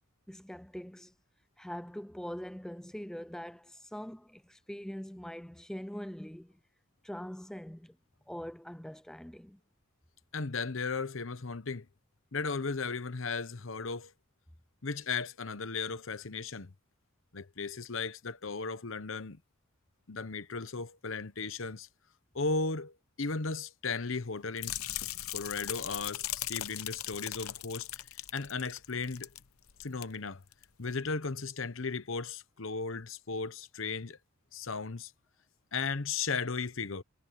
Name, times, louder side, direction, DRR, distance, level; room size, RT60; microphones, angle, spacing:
voice 1, 0.3-1.1 1.6-6.5 7.0-8.0 8.3-9.6, equal, 5° left, 0.4 m, -43 dB
voice 2, 10.3-11.9 12.3-14.1 14.8-16.7 17.3-19.4 20.1-21.9 22.3-24.7 25.3-27.9 28.3-29.3 29.8-30.4 30.8-34.2 34.5-35.1 35.7-37.0, left 4 dB, 65° left, 1.0 m, -36 dB
sound 1, 24.6-29.4 29.7-30.0 30.5-30.6, left 14 dB, 90° left, 0.8 m, -38 dB
head